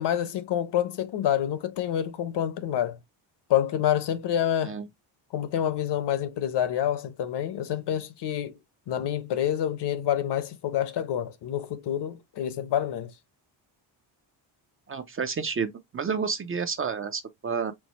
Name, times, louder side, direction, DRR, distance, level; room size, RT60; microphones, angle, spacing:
voice 1, 0.0-3.0 3.5-4.7 5.3-8.5 8.9-13.1, left 10 dB, 60° left, 0.9 m, -27 dB
voice 2, 14.9-17.7, right 6 dB, 30° right, 0.5 m, -30 dB
4.7 x 2.1 x 4.1 m
cardioid pair, 130°, 47 cm